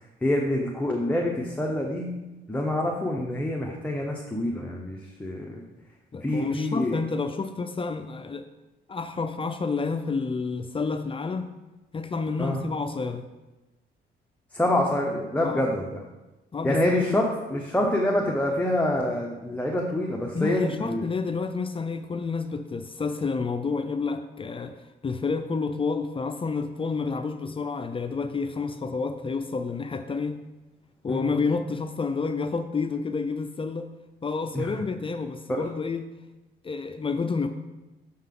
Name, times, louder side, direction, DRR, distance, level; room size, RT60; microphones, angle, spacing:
voice 1, 0.2-2.1 2.5-5.6 6.2-7.0 12.4-12.6 14.5-16.0 16.6-21.0 31.1-31.3 34.5-34.7 35.5-35.6, left 1 dB, 5° left, -1 dB, 0.8 m, -26 dB
voice 2, 6.1-8.5 8.9-11.5 11.9-13.3 15.4-15.7 16.5-17.2 20.3-24.7 25.0-30.4 31.0-33.9 34.2-36.0 36.6-37.5, left 4 dB, 25° left, 8 dB, 0.4 m, -29 dB
6.6 x 5.6 x 3.8 m, 1.1 s
cardioid pair, 90°, 20 cm